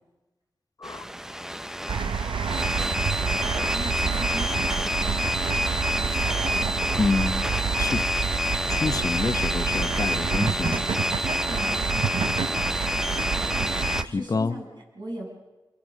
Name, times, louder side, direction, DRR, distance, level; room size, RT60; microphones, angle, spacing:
sound 1, 0.8-14.0, equal, 5° right, 0.7 m, -28 dB
sound 2, 1.9-14.1, right 6 dB, 80° right, 0.7 m, -29 dB
voice 1, 3.6-5.3 11.5-11.8 14.0-14.7 14.9-15.3, right 1 dB, 60° right, -1 dB, 7.6 m, -38 dB
voice 2, 7.0-7.5 7.8-8.1 8.7-10.8 14.0-14.6, left 4 dB, 45° left, 12 dB, 0.9 m, -28 dB
29.0 x 22.0 x 6.5 m, 1.1 s
wide cardioid pair, 85°, 8 cm